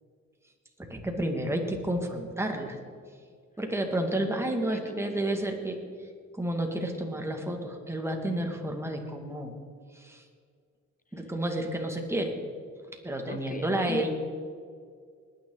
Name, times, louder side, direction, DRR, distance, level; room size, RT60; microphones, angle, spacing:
voice 1, 0.9-2.8 3.6-5.8 6.3-9.5 9.9-10.2 11.1-12.3 13.0-14.1, right 1 dB, 10° right, 2 dB, 2.2 m, -30 dB
voice 2, 4.7-5.2 11.2-11.3 13.3-14.1, left 5 dB, 25° left, 10 dB, 0.6 m, -39 dB
20.5 x 9.7 x 4.0 m, 2.1 s
cardioid pair, 90°, 30 cm